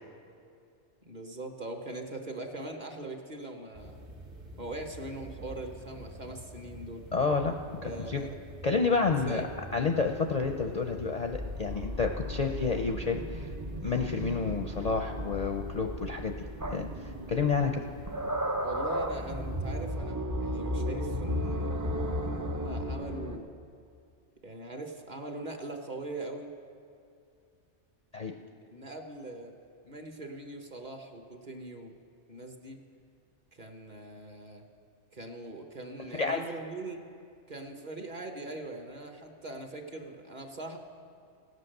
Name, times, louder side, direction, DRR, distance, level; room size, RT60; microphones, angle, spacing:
voice 1, 1.0-4.0 4.6-7.1 7.8-8.3 9.2-9.5 18.6-21.7 22.2-23.6 24.4-26.5 28.7-29.5 29.8-31.9 32.3-32.8 33.5-34.6 35.1-37.0 37.5-40.8, right 2 dB, 40° right, 4 dB, 1.2 m, -41 dB
sound 1, 3.7-20.0, equal, 70° right, 2.0 m, -47 dB
voice 2, 7.1-7.5 8.1-8.2 8.6-9.4 9.7-13.5 13.8-16.3 16.7-16.9 17.3-17.8 28.1-28.3 36.1-36.4, left 4 dB, 50° left, 4 dB, 0.5 m, -29 dB
sound 2, 11.3-23.4, equal, 25° right, 0.4 m, -35 dB
17.0 x 8.2 x 6.6 m, 2.4 s
omnidirectional pair, 1.2 m